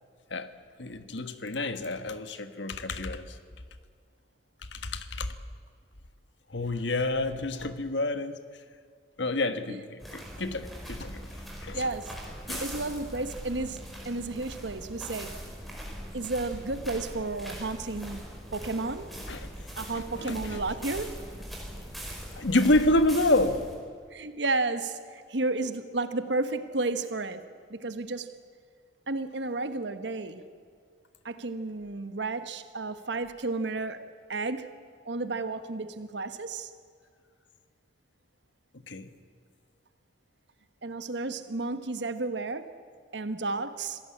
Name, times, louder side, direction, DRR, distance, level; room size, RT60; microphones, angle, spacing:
voice 1, 0.8-3.4 4.7-5.3 6.5-8.4 9.2-11.3 11.6-11.9 12.5-12.7 19.3-19.5 20.1-20.6 22.4-23.6 38.9-39.1, left 2 dB, 75° left, 10 dB, 1.5 m, -28 dB
sound 1, 10.0-23.7, equal, ahead, 4.9 m, -41 dB
voice 2, 11.7-12.1 12.6-15.3 16.1-19.1 19.8-21.2 24.1-27.4 27.7-28.3 29.1-30.4 31.2-34.7 35.0-36.7 40.8-42.7 43.1-44.0, right 3 dB, 75° right, 10 dB, 1.3 m, -32 dB
27.0 x 17.0 x 8.6 m, 2.1 s
head